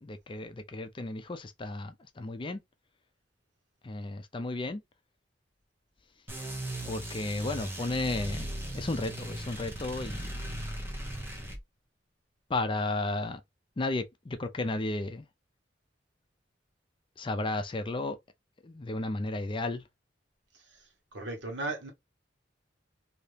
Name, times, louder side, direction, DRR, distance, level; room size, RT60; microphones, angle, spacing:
voice 1, 0.0-2.6 3.8-4.8 6.9-10.4 12.5-13.4 13.8-15.2 17.2-18.2 18.6-19.8, left 2 dB, 30° left, 0.4 m, -33 dB
sound 1, 6.3-11.6, right 1 dB, 15° right, 0.9 m, -38 dB
voice 2, 21.1-21.9, right 2 dB, 85° right, 1.3 m, -36 dB
2.8 x 2.7 x 3.2 m
head